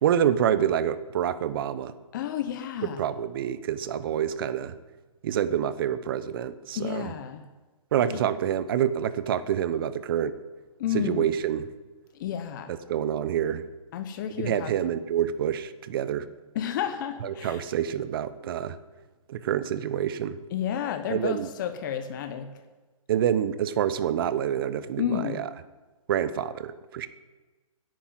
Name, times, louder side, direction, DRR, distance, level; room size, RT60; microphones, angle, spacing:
voice 1, 0.0-1.9 3.0-4.8 5.2-7.1 7.9-10.4 10.9-11.7 12.7-13.6 14.4-16.3 17.2-18.8 19.3-20.4 21.1-21.5 23.1-25.5 26.1-27.1, right 9 dB, 40° right, 14 dB, 0.9 m, -27 dB
voice 2, 2.1-3.0 6.7-7.4 8.1-8.2 10.8-11.3 12.1-12.7 13.9-14.8 16.5-17.6 20.5-22.5 25.0-25.4, left 10 dB, 35° left, 9 dB, 0.9 m, -31 dB
11.0 x 8.9 x 8.9 m, 1.2 s
hypercardioid pair, 155°, 18 cm